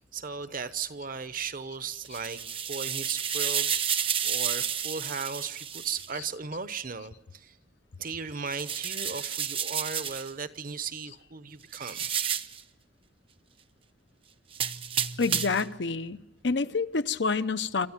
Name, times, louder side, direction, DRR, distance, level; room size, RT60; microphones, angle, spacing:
voice 1, 0.1-7.6 8.0-12.4, right 5 dB, 50° right, 1.0 m, -37 dB
sound 1, 2.0-6.1 8.5-10.3 11.7-12.6 14.5-15.7, right 8 dB, 30° right, 0.7 m, -31 dB
voice 2, 15.2-17.9, left 4 dB, 65° left, 0.7 m, -28 dB
27.0 x 13.5 x 7.4 m
head